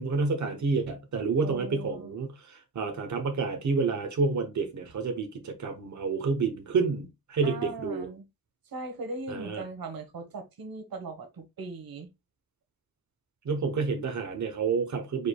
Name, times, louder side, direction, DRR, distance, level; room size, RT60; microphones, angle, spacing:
voice 1, 0.0-2.3 2.7-8.1 9.3-9.6 13.5-15.3, right 4 dB, 55° right, 1.0 m, -29 dB
voice 2, 1.4-2.1 7.4-8.2 8.7-12.1, right 3 dB, 85° right, 1.3 m, -39 dB
5.0 x 4.7 x 2.3 m
wide cardioid pair, 150°, 35 cm